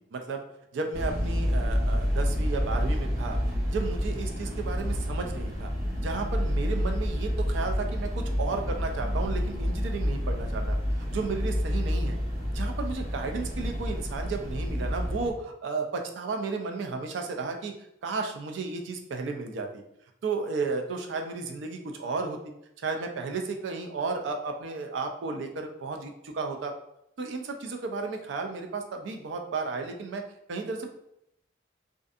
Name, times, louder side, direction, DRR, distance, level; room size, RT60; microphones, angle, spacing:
voice 1, 0.1-0.4 0.7-5.7 6.0-12.2 12.5-17.7 18.0-19.8 20.2-26.7 27.2-30.2 30.5-30.9, right 4 dB, 75° right, 4 dB, 0.4 m, -33 dB
sound 1, 0.9-15.3, equal, 50° right, 1.1 m, -29 dB
2.5 x 2.5 x 2.4 m, 0.80 s
head